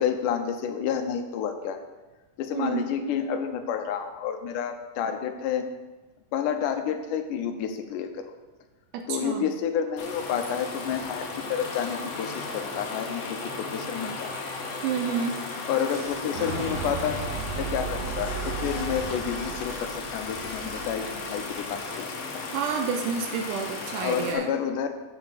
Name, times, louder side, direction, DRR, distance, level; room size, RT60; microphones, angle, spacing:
voice 1, 0.0-1.8 2.4-5.7 6.3-8.3 9.1-11.2 11.5-14.3 15.7-17.2 17.6-22.5 24.0-24.9, left 8 dB, 80° left, 6 dB, 2.3 m, -30 dB
voice 2, 2.5-2.9 8.9-9.5 14.8-15.4 22.5-24.5, right 6 dB, 85° right, 4 dB, 2.2 m, -29 dB
sound 1, 10.0-24.3, left 3 dB, 60° left, 1.9 m, -35 dB
Boom, 15.8-21.7, right 5 dB, 40° right, 1.1 m, -36 dB
7.9 x 5.5 x 6.7 m, 1.2 s
omnidirectional pair, 3.7 m